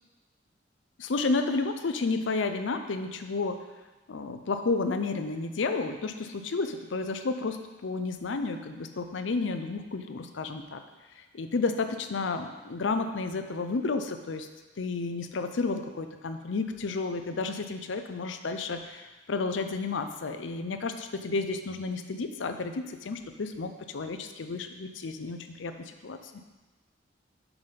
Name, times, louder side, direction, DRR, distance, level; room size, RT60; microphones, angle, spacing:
voice 1, 1.0-3.6 4.1-10.8 11.3-14.5 14.8-26.2, left 3 dB, 80° left, 7 dB, 0.5 m, -31 dB
5.9 x 5.6 x 5.1 m, 1.2 s
head